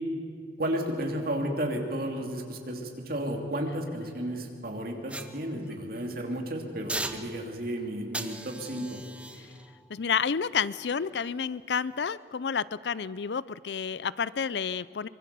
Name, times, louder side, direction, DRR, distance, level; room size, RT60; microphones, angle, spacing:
voice 1, 0.6-9.0, right 1 dB, 55° right, 2 dB, 2.8 m, -33 dB
sound 1, 5.1-6.1 6.9-7.7 8.1-11.4 11.9-12.1, right 2 dB, 5° right, 0.9 m, -40 dB
voice 2, 9.9-15.1, left 6 dB, 70° left, 19 dB, 0.5 m, -30 dB
24.0 x 22.5 x 6.9 m, 2.3 s
head